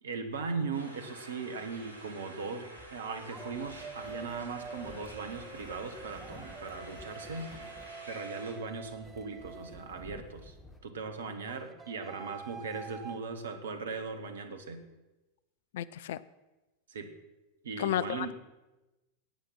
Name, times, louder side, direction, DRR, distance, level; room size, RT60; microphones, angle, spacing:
voice 1, 0.0-10.6 10.8-14.8 16.9-17.2 17.6-18.3, right 4 dB, 65° right, 8 dB, 1.5 m, -39 dB
sound 1, 0.7-8.5, right 1 dB, 80° left, 4.7 m, -49 dB
sound 2, 1.4-1.6 3.0-10.4 11.5-13.2, right 5 dB, 20° right, 0.8 m, -47 dB
sound 3, 2.8-10.8, left 1 dB, 15° left, 2.1 m, -54 dB
voice 2, 15.7-16.2 17.8-18.3, left 11 dB, 55° left, 18 dB, 0.5 m, -32 dB
16.5 x 9.2 x 5.8 m, 1.1 s
figure-of-eight pair, 90°, 0 cm